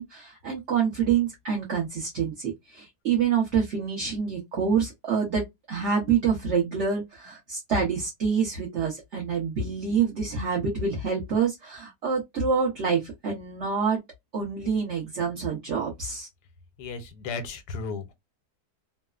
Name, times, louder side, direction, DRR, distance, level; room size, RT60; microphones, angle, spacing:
voice 1, 0.0-5.4 5.7-14.0 14.3-16.3, right 6 dB, 55° right, 1.0 m, -27 dB
voice 2, 16.8-18.1, left 4 dB, 80° left, 1.2 m, -34 dB
3.1 x 2.0 x 2.3 m
omnidirectional pair, 1.7 m